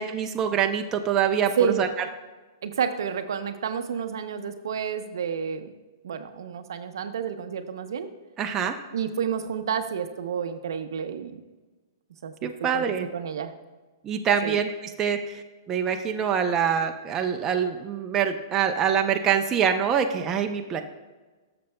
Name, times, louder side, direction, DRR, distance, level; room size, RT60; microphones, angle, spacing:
voice 1, 0.0-1.9 8.4-8.8 12.4-13.1 14.0-20.8, right 8 dB, 20° right, 4 dB, 0.6 m, -25 dB
voice 2, 2.6-5.7 6.0-8.1 8.9-11.4 12.2-13.5 14.4-14.6, right 7 dB, 75° right, 9 dB, 0.7 m, -30 dB
12.5 x 6.8 x 2.3 m, 1.3 s
hypercardioid pair, 145°, 2 cm